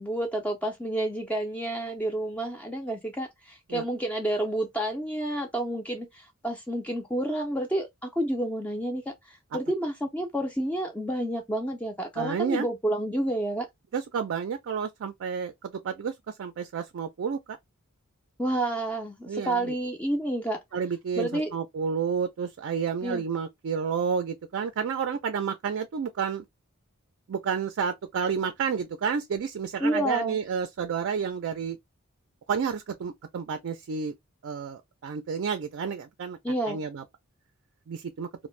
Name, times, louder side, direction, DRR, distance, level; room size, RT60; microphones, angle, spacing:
voice 1, 0.0-13.7 18.4-20.6 21.2-21.5 23.0-23.2 29.8-30.4 36.4-36.8, right 1 dB, 5° left, 0.4 m, -29 dB
voice 2, 12.2-12.7 13.9-17.6 19.3-19.7 20.7-26.4 27.3-31.8 32.5-34.1 34.4-36.4 36.7-37.0 37.9-38.3, right 6 dB, 55° right, 0.4 m, -30 dB
2.5 x 2.1 x 3.1 m
head